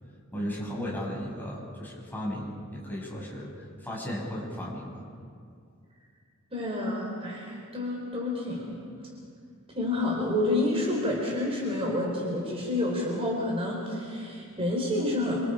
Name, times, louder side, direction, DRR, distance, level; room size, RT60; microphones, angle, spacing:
voice 1, 0.3-5.0, equal, 10° left, -5 dB, 6.9 m, -36 dB
voice 2, 6.5-8.8 9.7-15.4, left 1 dB, 25° right, -2 dB, 4.3 m, -29 dB
28.5 x 26.0 x 5.1 m, 2.3 s
head